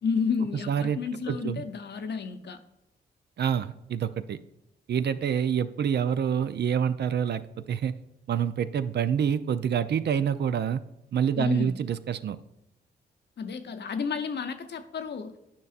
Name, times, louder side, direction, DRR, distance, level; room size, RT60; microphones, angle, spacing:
voice 1, 0.0-2.6 11.3-11.8 13.4-15.3, left 5 dB, 60° left, 8 dB, 0.7 m, -31 dB
voice 2, 0.7-1.0 1.3-1.6 3.4-4.4 4.9-7.9 8.3-10.8 11.1-12.4, right 8 dB, 55° right, 12 dB, 0.4 m, -27 dB
9.3 x 5.4 x 2.5 m, 0.87 s
supercardioid pair, 45°, 20 cm